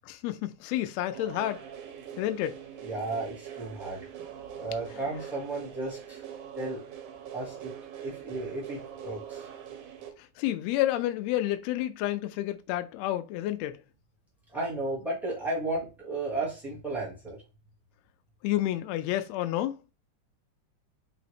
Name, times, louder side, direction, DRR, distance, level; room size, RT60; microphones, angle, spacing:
voice 1, 0.1-1.6 2.2-2.6 10.4-13.8 18.4-19.8, left 14 dB, 80° left, 1.6 m, -30 dB
sound 1, 1.1-10.1, right 9 dB, 80° right, 2.2 m, -43 dB
voice 2, 2.8-4.1 4.6-6.2 6.5-6.8 7.3-7.7 8.0-9.5 14.5-17.4, right 2 dB, ahead, 0.5 m, -34 dB
5.1 x 2.8 x 3.3 m
omnidirectional pair, 3.5 m